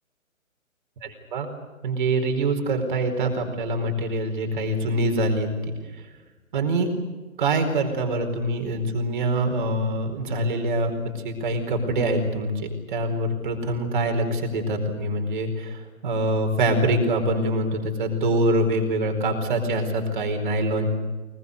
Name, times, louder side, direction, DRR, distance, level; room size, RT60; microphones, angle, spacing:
voice 1, 1.0-1.5 1.8-5.7 6.5-6.9 7.4-20.9, right 1 dB, 35° right, 5 dB, 4.6 m, -24 dB
24.0 x 22.0 x 8.3 m, 1.2 s
figure-of-eight pair, 140°, 41 cm